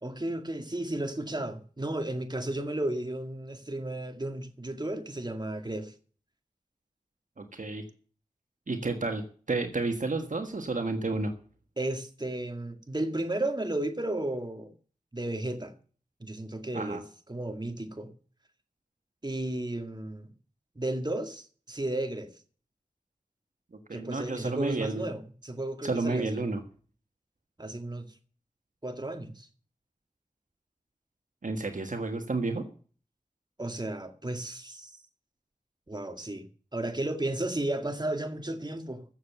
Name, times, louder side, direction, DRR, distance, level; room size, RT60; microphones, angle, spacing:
voice 1, 0.0-5.9 11.8-14.7 15.1-15.7 16.2-18.1 19.2-20.3 20.8-22.3 23.9-26.5 27.6-28.0 28.8-29.5 33.6-34.9 35.9-36.5 36.7-39.0, right 1 dB, 30° right, 2.1 m, -33 dB
voice 2, 7.4-7.8 8.7-9.2 9.5-11.3 16.7-17.0 23.9-25.0 25.8-26.6 31.4-32.6, right 3 dB, 65° right, 1.5 m, -31 dB
14.5 x 7.4 x 6.8 m
cardioid pair, 40°, 14 cm